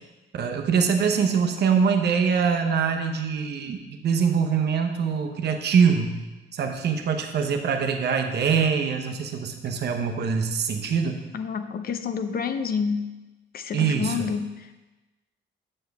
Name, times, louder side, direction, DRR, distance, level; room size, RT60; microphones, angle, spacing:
voice 1, 0.3-6.2 6.5-11.2 13.7-14.3, right 6 dB, 55° right, 4 dB, 0.9 m, -23 dB
voice 2, 11.3-13.1 13.5-14.9, left 6 dB, 50° left, 8 dB, 0.6 m, -29 dB
7.5 x 6.5 x 3.5 m, 1.1 s
cardioid pair, 90°, 20 cm